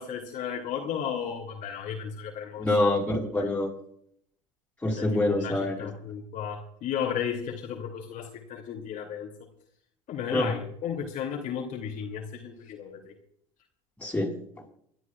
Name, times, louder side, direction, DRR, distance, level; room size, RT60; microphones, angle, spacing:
voice 1, 0.0-2.7 3.4-3.5 5.0-9.3 10.1-13.1, left 8 dB, 50° left, 1 dB, 2.9 m, -34 dB
voice 2, 2.6-3.7 4.8-5.9 10.3-10.5 14.0-14.4, left 1 dB, 10° left, -2 dB, 7.0 m, -26 dB
28.5 x 12.5 x 2.5 m, 0.68 s
hypercardioid pair, 85°, 17 cm